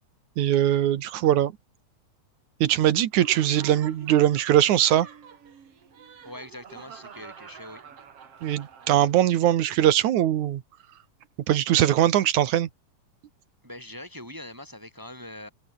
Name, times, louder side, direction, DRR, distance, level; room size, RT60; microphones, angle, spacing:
voice 1, 0.4-1.5 2.6-5.1 8.4-10.6 11.5-12.7, right 12 dB, 65° right, 2.6 m, -21 dB
Laughter, 3.1-9.5, right 7 dB, 50° right, 3.1 m, -46 dB
voice 2, 6.2-7.8 13.6-15.5, left 1 dB, 5° right, 3.6 m, -42 dB
omnidirectional pair, 3.8 m